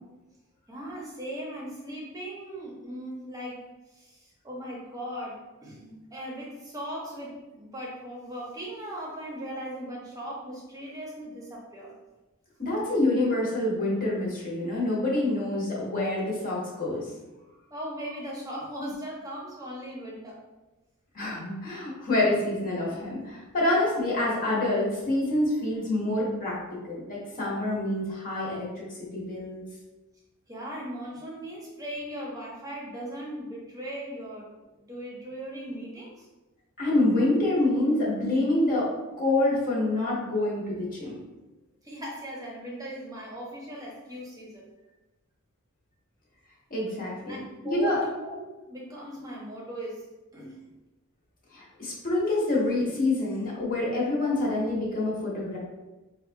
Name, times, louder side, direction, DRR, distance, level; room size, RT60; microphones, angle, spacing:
voice 1, 0.7-3.6 3.9-11.9 17.7-20.4 30.5-34.5 34.9-36.3 41.8-44.6 47.3-50.0 50.3-50.6, equal, 15° right, -4 dB, 0.8 m, -38 dB
voice 2, 12.6-17.0 21.1-28.9 29.1-29.6 36.8-38.9 39.2-41.1 46.7-47.4 47.6-48.0 51.5-55.6, left 2 dB, 40° left, -5 dB, 1.0 m, -27 dB
4.8 x 2.3 x 2.6 m, 1.1 s
head